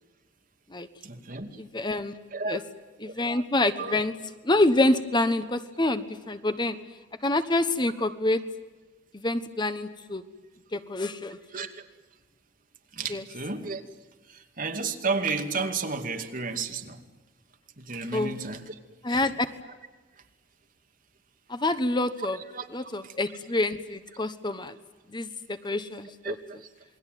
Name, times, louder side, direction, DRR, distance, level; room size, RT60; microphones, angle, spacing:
voice 1, 1.0-1.6 2.3-2.6 3.0-3.1 3.8-4.0 11.5-11.8 12.9-13.8 14.3-17.0 17.8-18.8 19.1-19.2 22.5-23.1 26.2-26.4, right 4 dB, 45° right, 5 dB, 2.5 m, -32 dB
voice 2, 1.6-2.1 2.5-2.6 3.0-4.1 4.4-6.8 7.2-8.4 9.1-10.2 10.7-11.4 13.1-13.2 18.1-18.4 19.0-19.5 21.5-22.4 22.7-24.8 25.1-26.4, left 2 dB, 25° left, 10 dB, 1.1 m, -27 dB
28.0 x 21.5 x 9.3 m, 1.3 s
head